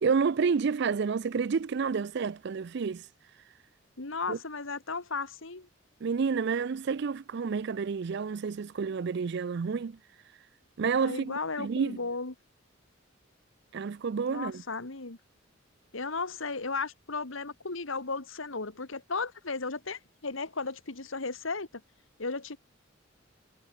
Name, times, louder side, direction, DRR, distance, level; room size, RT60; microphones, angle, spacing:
voice 1, 0.0-3.1 4.3-4.4 6.0-10.0 10.8-12.0 13.7-14.6, right 5 dB, 55° right, 0.4 m, -29 dB
voice 2, 4.0-5.7 11.0-12.3 14.3-15.2 15.9-21.8 22.2-22.6, left 4 dB, 70° left, 1.8 m, -35 dB
head